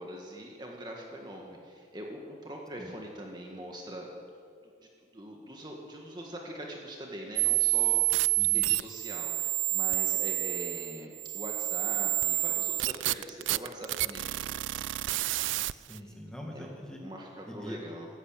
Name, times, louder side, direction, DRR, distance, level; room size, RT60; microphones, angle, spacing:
voice 1, 0.0-4.2 5.1-8.0 8.4-14.9 15.9-16.2 16.5-16.7 17.0-18.1, equal, 25° right, 0 dB, 1.6 m, -43 dB
sound 1, 7.4-16.0, right 19 dB, 80° right, 0.4 m, -29 dB
voice 2, 8.4-8.7 15.6-17.0 17.5-17.8, equal, 5° left, 0 dB, 1.9 m, -43 dB
14.5 x 11.0 x 8.9 m, 2.2 s
head